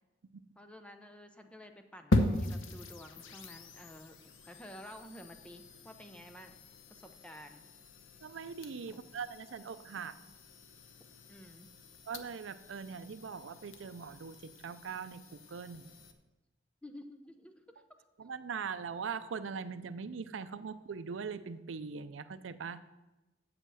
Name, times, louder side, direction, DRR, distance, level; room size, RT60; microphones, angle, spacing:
voice 1, 0.6-4.2 4.5-6.6 6.9-7.6 8.9-9.0 11.3-11.7 16.8-17.6, equal, 5° left, 6 dB, 0.7 m, -51 dB
sound 1, 2.1-16.1, left 1 dB, 90° left, 0.9 m, -39 dB
voice 2, 8.2-10.1 12.1-15.9 18.2-22.8, right 5 dB, 80° right, 12 dB, 0.5 m, -41 dB
7.9 x 7.8 x 6.2 m, 1.1 s
head